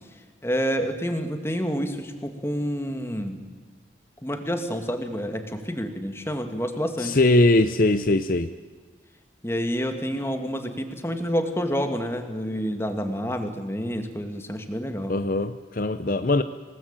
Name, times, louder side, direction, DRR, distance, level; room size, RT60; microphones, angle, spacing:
voice 1, 0.4-3.4 4.2-7.2 9.4-15.1, equal, 15° left, 6 dB, 2.1 m, -28 dB
voice 2, 7.0-8.5 15.1-16.4, left 2 dB, 50° left, 10 dB, 0.7 m, -21 dB
27.5 x 19.0 x 9.0 m, 1.5 s
head